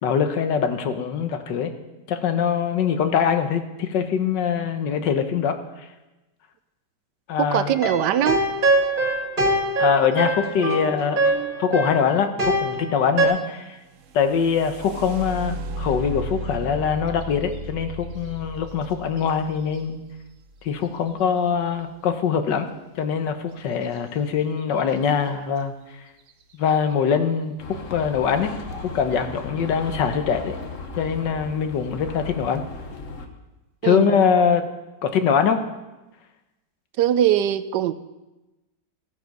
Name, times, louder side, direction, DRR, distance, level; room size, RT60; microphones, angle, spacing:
voice 1, 0.0-1.7 2.1-5.5 7.3-7.7 9.8-11.2 11.6-13.8 14.1-20.0 20.6-22.7 23.0-25.7 26.5-27.5 27.9-28.6 28.9-30.6 31.0-32.6 33.8-34.7 35.0-35.6, left 7 dB, 80° left, 8 dB, 1.6 m, -23 dB
voice 2, 7.4-8.4 25.3-25.5 33.8-34.6 37.0-37.9, right 11 dB, 80° right, 13 dB, 1.2 m, -22 dB
sound 1, 7.7-13.3, right 2 dB, 30° right, 2.1 m, -23 dB
sound 2, 13.9-21.8 23.8-24.0 24.4-25.0 25.6-25.7 26.2-26.5, right 1 dB, 55° right, 0.9 m, -35 dB
sound 3, 27.6-33.3, left 3 dB, 50° left, 1.3 m, -36 dB
15.0 x 9.2 x 5.3 m, 1.1 s
omnidirectional pair, 1.9 m